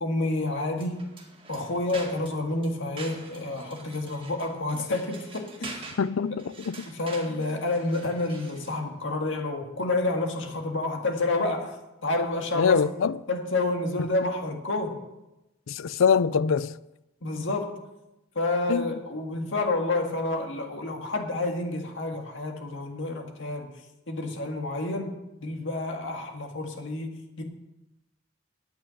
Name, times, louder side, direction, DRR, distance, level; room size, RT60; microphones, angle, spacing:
voice 1, 0.0-1.0 1.5-5.8 6.9-12.8 13.3-15.0 17.2-17.7 18.4-23.7 24.1-27.4, left 2 dB, 70° left, 1.9 m, -29 dB
sound 1, 0.7-8.8, right 3 dB, 30° right, 2.0 m, -45 dB
voice 2, 6.0-6.8 12.5-13.2 15.7-16.7 18.7-18.9, left 6 dB, 90° left, 0.4 m, -24 dB
9.2 x 8.8 x 7.1 m
head